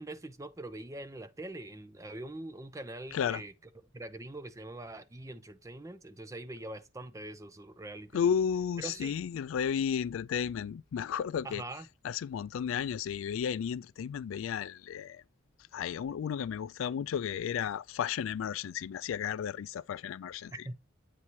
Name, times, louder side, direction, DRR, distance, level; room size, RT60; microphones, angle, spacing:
voice 1, 0.0-3.5 3.9-8.2 8.8-9.2 11.4-11.9 20.5-20.7, right 2 dB, 15° right, 0.5 m, -43 dB
voice 2, 8.1-11.6 12.0-15.2 15.7-20.5, left 8 dB, 80° left, 0.3 m, -33 dB
8.3 x 2.8 x 4.6 m
head